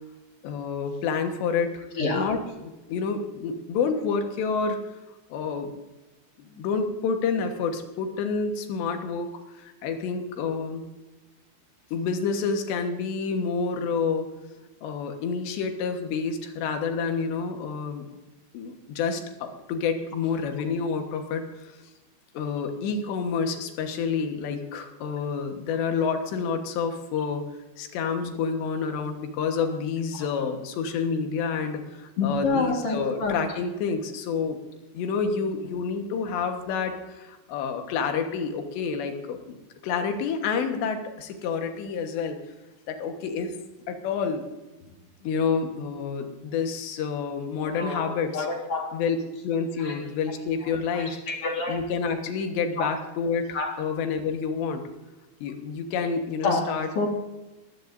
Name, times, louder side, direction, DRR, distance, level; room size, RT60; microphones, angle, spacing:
voice 1, 0.4-1.8 2.1-4.8 5.3-5.7 6.4-9.3 9.6-10.8 11.9-14.3 14.8-18.1 18.5-21.8 22.4-27.4 27.8-34.6 34.9-39.6 39.8-42.4 42.9-43.6 43.9-44.5 45.2-48.5 48.9-49.2 49.4-51.2 51.7-54.8 55.4-56.9, left 5 dB, 85° left, 5 dB, 3.6 m, -28 dB
voice 2, 32.2-33.4 47.8-48.9 49.8-50.0 50.9-51.8 52.8-52.9 53.5-53.7 56.4-56.6 57.0-57.1, left 3 dB, 50° left, 1 dB, 1.9 m, -27 dB
20.5 x 15.5 x 2.7 m, 1.1 s
omnidirectional pair, 4.9 m